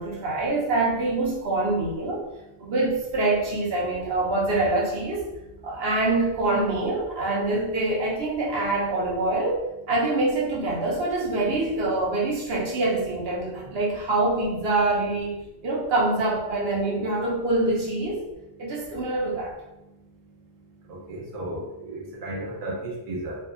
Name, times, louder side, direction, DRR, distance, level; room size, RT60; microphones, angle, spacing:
voice 1, 0.0-2.2 2.6-5.2 5.6-9.6 9.9-15.4 15.6-18.2 18.6-19.5, right 2 dB, 65° right, -4 dB, 0.9 m, -25 dB
voice 2, 20.9-23.4, right 1 dB, 45° right, -3 dB, 0.5 m, -34 dB
2.7 x 2.3 x 2.4 m, 0.96 s
omnidirectional pair, 1.1 m